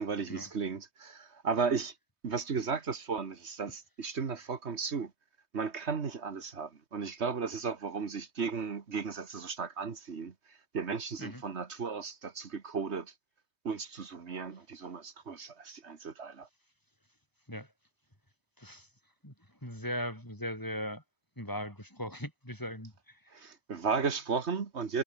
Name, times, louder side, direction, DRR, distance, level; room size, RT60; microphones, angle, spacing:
voice 1, 0.0-1.9 2.2-5.1 5.5-13.1 13.6-16.5 23.3-25.0, right 5 dB, 75° right, 1.8 m, -35 dB
voice 2, 18.6-18.9 19.2-19.3 19.6-21.0 21.4-23.5, equal, 15° left, 6.8 m, -39 dB
omnidirectional pair, 1.1 m